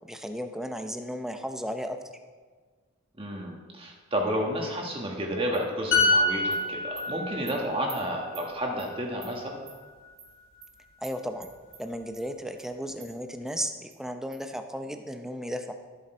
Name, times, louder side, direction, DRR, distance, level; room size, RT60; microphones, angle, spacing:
voice 1, 0.0-2.0 11.0-11.5 11.8-15.7, equal, ahead, 6 dB, 0.6 m, -34 dB
voice 2, 3.2-9.6, equal, 25° right, 0 dB, 1.5 m, -31 dB
Animal, 5.5-5.6 6.0-6.1 6.5-6.6 7.0-7.1 7.5-7.6 7.9-8.0 8.3-8.5 8.8-8.9 9.2-9.3 9.7-9.8 10.2-10.3 10.6-10.7 11.0-11.1 11.4-11.8 12.1-12.2 12.6-12.7 13.0-13.1 13.5-13.6 13.9-14.0 14.3-14.4, right 7 dB, 75° right, 2.5 m, -46 dB
sound 1, 5.9-9.5 9.8-10.1, left 2 dB, 65° left, 2.3 m, -27 dB
13.5 x 7.6 x 4.4 m, 1.5 s
head